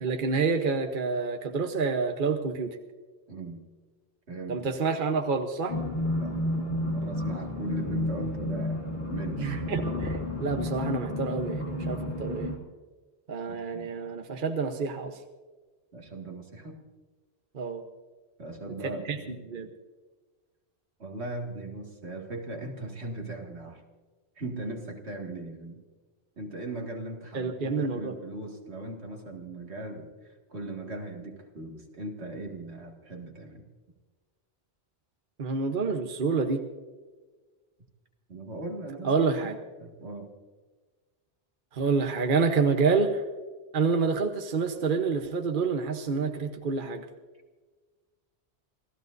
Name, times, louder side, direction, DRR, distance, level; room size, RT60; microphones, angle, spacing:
voice 1, 0.0-2.8 4.5-5.8 9.4-12.5 13.3-15.2 17.5-17.8 19.0-19.2 19.5-19.7 27.3-28.1 35.4-36.6 39.0-39.6 41.7-43.2 43.7-47.0, right 4 dB, 50° right, 5 dB, 1.1 m, -28 dB
voice 2, 3.3-3.7 4.3-4.7 6.1-9.7 13.5-14.0 15.9-16.8 18.4-19.3 21.0-23.8 24.4-25.8 26.4-30.1 30.5-33.7 38.3-39.5 39.8-40.3, right 2 dB, 75° right, 1 dB, 2.4 m, -39 dB
sound 1, 5.7-12.6, left 1 dB, 85° left, 2.8 m, -31 dB
28.5 x 15.5 x 2.6 m, 1.3 s
omnidirectional pair, 1.1 m